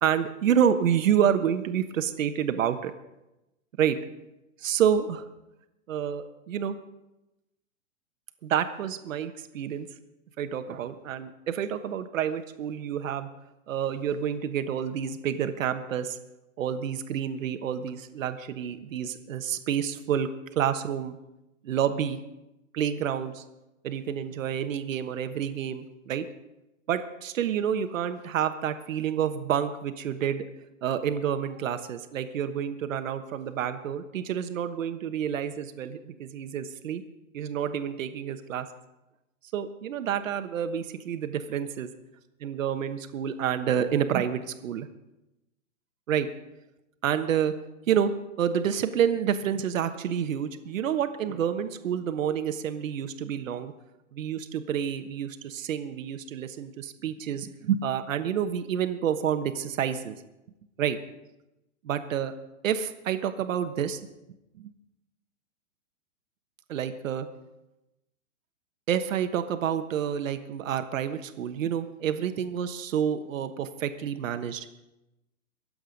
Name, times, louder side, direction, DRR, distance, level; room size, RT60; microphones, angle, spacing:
voice 1, 0.0-2.9 3.8-4.0 4.6-5.3 5.9-6.8 8.4-9.9 10.4-13.3 13.7-16.2 16.6-20.3 20.5-21.2 21.6-22.2 22.7-23.4 23.8-26.2 26.9-30.4 30.8-37.0 37.3-38.7 39.5-41.9 42.4-44.9 46.1-46.3 47.0-47.5 47.9-48.1 48.4-53.7 54.1-60.2 60.8-61.0 61.8-62.3 62.6-64.0 64.6-64.7 66.7-67.3 68.9-74.7, right 9 dB, 70° right, 9 dB, 1.3 m, -28 dB
23.0 x 7.9 x 5.2 m, 0.94 s
hypercardioid pair, 150°, 41 cm